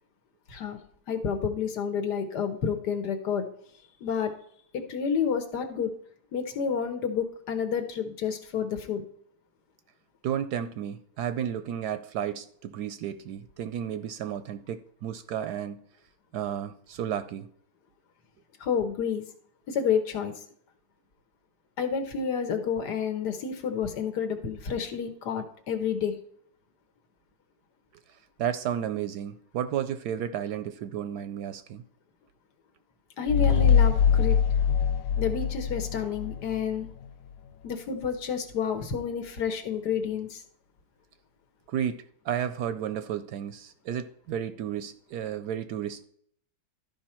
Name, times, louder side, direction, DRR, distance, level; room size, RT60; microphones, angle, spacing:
voice 1, 1.1-3.5 4.0-4.3 4.7-5.9 6.3-9.0 18.6-19.2 19.7-20.3 21.8-26.2 33.2-34.4 35.2-36.9 37.6-40.4, left 7 dB, 65° left, 7 dB, 1.6 m, -29 dB
voice 2, 10.2-15.8 16.3-17.5 28.4-31.8 41.7-46.0, right 9 dB, 70° right, 11 dB, 1.0 m, -32 dB
sound 1, 33.3-36.6, left 7 dB, 90° left, 1.3 m, -23 dB
12.0 x 5.2 x 4.3 m, 0.63 s
omnidirectional pair, 1.9 m